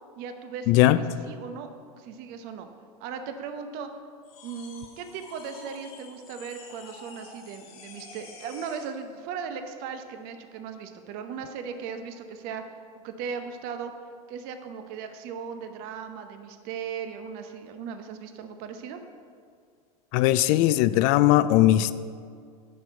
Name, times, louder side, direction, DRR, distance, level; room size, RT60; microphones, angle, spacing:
voice 1, 0.2-1.7 2.0-2.7 3.0-3.9 4.4-12.6 13.0-13.9 14.3-19.0, right 6 dB, 55° right, 7 dB, 0.8 m, -37 dB
voice 2, 0.7-1.0 20.1-21.9, left 14 dB, 50° left, 15 dB, 0.4 m, -19 dB
sound 1, 4.2-9.0, left 4 dB, 70° left, 2.1 m, -48 dB
9.7 x 4.5 x 6.7 m, 2.2 s
hypercardioid pair, 95°, 19 cm